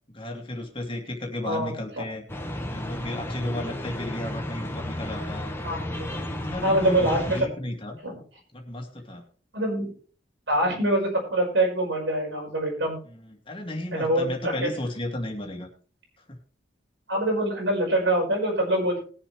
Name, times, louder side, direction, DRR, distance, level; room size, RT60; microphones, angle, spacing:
voice 1, 0.1-2.2 2.7-5.5 6.0-8.0 8.5-9.2 13.2-15.7 16.3-16.4, left 1 dB, 30° left, 2 dB, 2.4 m, -34 dB
voice 2, 1.4-2.0 5.6-6.1 6.6-7.4 8.0-8.1 9.5-9.9 10.5-13.0 13.9-14.7 17.1-19.0, right 1 dB, 80° right, -1 dB, 5.4 m, -25 dB
sound 1, 2.3-7.4, left 1 dB, 15° left, 1.4 m, -33 dB
20.5 x 7.2 x 3.3 m, 0.40 s
head